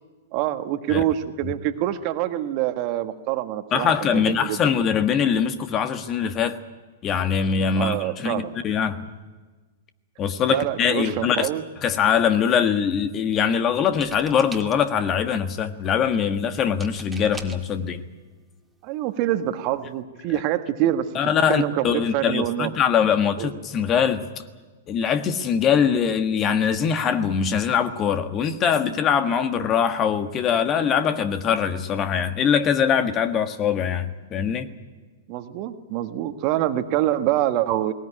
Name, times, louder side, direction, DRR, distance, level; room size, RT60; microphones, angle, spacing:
voice 1, 0.3-4.6 7.7-8.6 10.5-11.6 18.8-21.1 21.5-22.7 23.4-23.5 35.3-37.9, right 13 dB, 45° right, 9 dB, 1.5 m, -25 dB
voice 2, 3.7-6.6 7.0-9.1 10.2-11.5 11.8-18.0 20.3-20.4 21.1-24.3 24.9-34.7, left 7 dB, 30° left, 9 dB, 1.4 m, -22 dB
sound 1, 13.9-15.0 16.8-17.7 18.7-18.8 19.1-19.4, right 3 dB, 10° right, 2.0 m, -41 dB
19.5 x 19.0 x 9.9 m, 1.3 s
hypercardioid pair, 110°, 0 cm